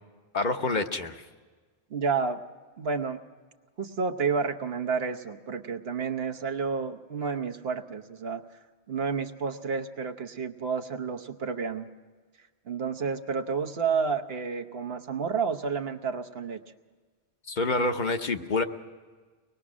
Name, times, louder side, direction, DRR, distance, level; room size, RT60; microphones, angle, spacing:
voice 1, 0.3-1.2 17.5-18.6, left 3 dB, 50° left, 6 dB, 0.9 m, -27 dB
voice 2, 1.9-2.4 2.8-3.2 3.8-8.4 8.9-11.9 12.7-16.6, right 5 dB, 70° right, 6 dB, 1.2 m, -30 dB
24.0 x 19.5 x 6.1 m, 1.5 s
omnidirectional pair, 1.1 m